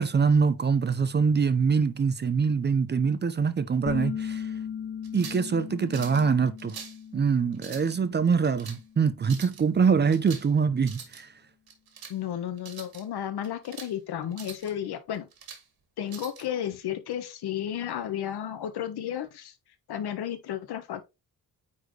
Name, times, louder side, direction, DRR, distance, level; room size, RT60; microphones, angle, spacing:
voice 1, 0.0-4.5 5.1-6.7 7.1-11.3, right 5 dB, 25° right, 0.6 m, -24 dB
sound 1, 3.9-9.3, left 8 dB, 35° left, 0.6 m, -38 dB
sound 2, 5.0-5.5 5.9-6.3 6.6-7.0 7.5-8.0 8.4-8.8 9.2-9.6 10.1-10.5 10.8-11.2 11.7-12.2 12.6-13.0 13.4-13.9 14.3-14.7 15.1-15.6 16.1-16.4, right 6 dB, 70° right, 2.1 m, -44 dB
voice 2, 12.1-15.3 16.0-19.5 19.9-21.0, left 10 dB, 80° left, 1.4 m, -33 dB
9.4 x 4.2 x 3.2 m
wide cardioid pair, 170°, 38 cm